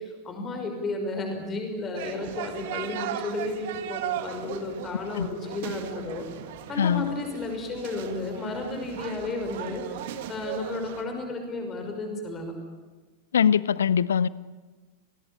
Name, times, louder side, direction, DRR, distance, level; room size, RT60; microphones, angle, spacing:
voice 1, 0.0-6.3 6.7-9.8 10.3-12.5, left 2 dB, 25° left, 5.9 m, -33 dB
sound 1, 2.0-11.0, right 11 dB, 50° right, 2.0 m, -37 dB
voice 2, 6.8-7.1 13.3-14.3, left 8 dB, 65° left, 0.7 m, -22 dB
29.0 x 19.5 x 8.9 m
figure-of-eight pair, 90°, 0 cm